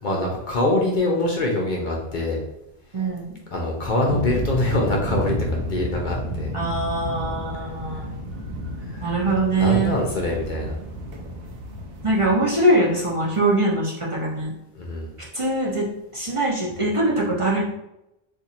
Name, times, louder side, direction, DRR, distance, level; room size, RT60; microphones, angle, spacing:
voice 1, 0.0-2.4 3.5-6.5 8.9-9.1 9.5-10.8 14.7-15.1, left 2 dB, 55° left, -1 dB, 0.7 m, -24 dB
voice 2, 2.9-3.4 6.5-8.1 9.0-10.0 12.0-14.5 15.3-15.9 16.1-17.6, right 2 dB, 35° right, -5 dB, 0.7 m, -22 dB
sound 1, 4.1-13.4, equal, 70° right, 0.8 m, -31 dB
2.6 x 2.5 x 4.2 m, 0.87 s
omnidirectional pair, 1.1 m